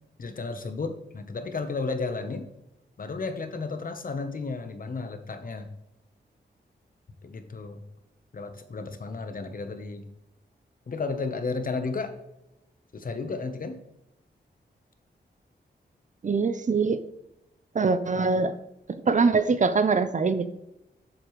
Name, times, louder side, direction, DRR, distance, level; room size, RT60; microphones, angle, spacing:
voice 1, 0.2-2.4 3.0-5.7 7.2-7.8 8.3-10.1 10.9-12.2 12.9-13.8 18.1-18.3, left 4 dB, 50° left, 8 dB, 1.0 m, -33 dB
voice 2, 16.2-17.0 17.7-18.5 18.9-20.5, right 4 dB, 45° right, 12 dB, 0.6 m, -23 dB
7.6 x 6.7 x 3.1 m, 0.90 s
cardioid pair, 75°, 18 cm